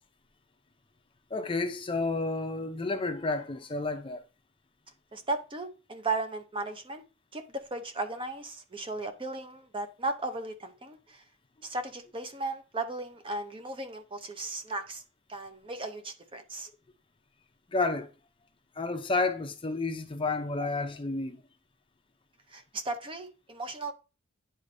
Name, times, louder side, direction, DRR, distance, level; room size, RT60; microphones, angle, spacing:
voice 1, 1.3-4.3 17.7-18.1 18.8-21.4, left 3 dB, 25° left, 0.6 m, -31 dB
voice 2, 5.1-7.0 7.3-11.2 11.6-15.0 15.3-16.7 22.5-23.9, right 2 dB, 25° right, 0.7 m, -36 dB
9.9 x 4.2 x 2.6 m
head